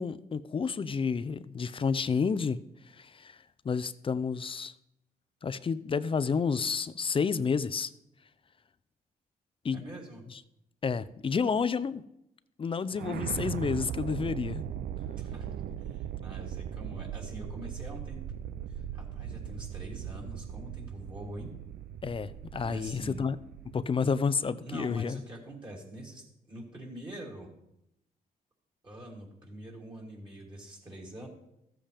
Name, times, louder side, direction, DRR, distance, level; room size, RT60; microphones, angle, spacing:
voice 1, 0.0-2.6 2.9-3.4 3.6-4.7 5.4-7.9 9.6-9.8 10.8-12.0 12.6-14.6 22.0-23.4 23.7-25.2, left 5 dB, 35° left, 15 dB, 0.5 m, -30 dB
voice 2, 9.7-10.2 15.2-15.5 15.8-18.2 18.7-21.5 22.6-23.2 24.6-27.5 28.8-31.3, right 1 dB, 30° right, -3 dB, 3.2 m, -44 dB
sound 1, 12.9-24.0, right 10 dB, 80° right, 0.4 m, -39 dB
14.0 x 7.4 x 3.4 m, 0.82 s
cardioid pair, 90°, 16 cm